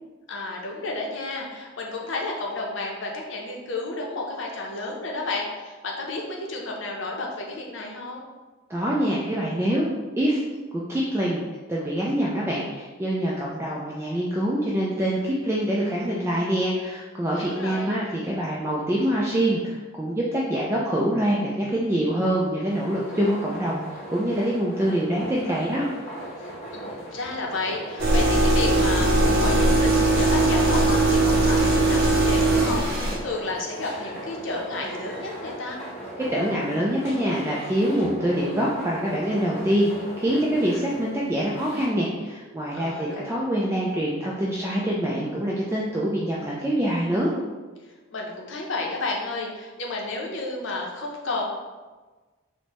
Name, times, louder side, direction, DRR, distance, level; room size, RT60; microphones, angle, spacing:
voice 1, 0.3-8.2 17.3-18.0 26.7-35.8 42.7-43.4 47.8-51.4, left 2 dB, 70° left, 0 dB, 0.7 m, -32 dB
voice 2, 8.7-9.9 10.2-10.4 10.9-11.4 11.7-25.9 36.2-39.9 40.2-47.3, right 1 dB, 15° right, -5 dB, 0.3 m, -25 dB
sound 1, 22.7-41.9, right 1 dB, 35° left, 1.1 m, -38 dB
sound 2, 28.0-33.2, right 2 dB, 55° right, 0.7 m, -20 dB
4.3 x 2.1 x 3.0 m, 1.3 s
head